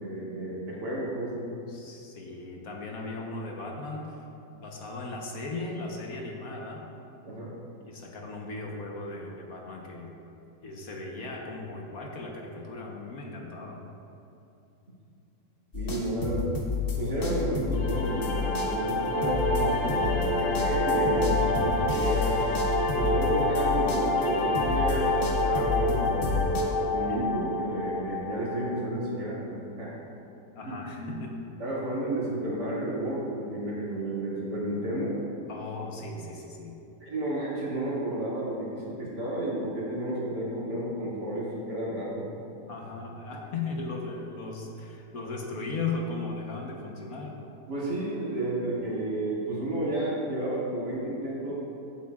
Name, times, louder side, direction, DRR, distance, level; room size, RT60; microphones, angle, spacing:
voice 1, 0.0-1.5 7.2-7.5 15.7-16.5 17.0-22.5 22.9-26.4 26.9-29.9 31.0-31.1 31.6-35.2 37.0-42.3 47.7-51.5, right 1 dB, 90° right, -7 dB, 2.9 m, -32 dB
voice 2, 1.7-4.2 4.5-6.9 7.8-10.1 10.6-13.9 30.5-31.3 35.5-36.8 42.7-47.3, left 3 dB, 60° left, 0 dB, 1.4 m, -37 dB
sound 1, 15.7-24.3 24.5-26.6, left 5 dB, 40° left, 1.2 m, -31 dB
sound 2, 17.7-28.8, left 1 dB, 80° left, 1.4 m, -28 dB
14.5 x 8.8 x 2.4 m, 2.8 s
omnidirectional pair, 1.7 m